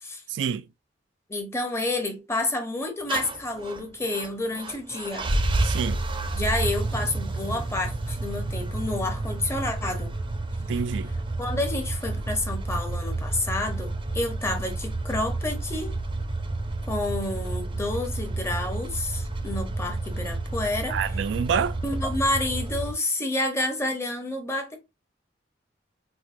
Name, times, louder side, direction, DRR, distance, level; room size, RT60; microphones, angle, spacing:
voice 1, 0.3-0.7 5.6-6.0 10.6-11.1 20.9-21.8, right 7 dB, 80° right, 0.3 m, -27 dB
voice 2, 1.3-5.3 6.3-10.1 11.4-15.9 16.9-21.0 21.8-24.8, left 2 dB, 15° left, 0.7 m, -29 dB
sound 1, 3.1-22.9, right 2 dB, 30° right, 0.5 m, -30 dB
4.3 x 2.1 x 2.5 m
head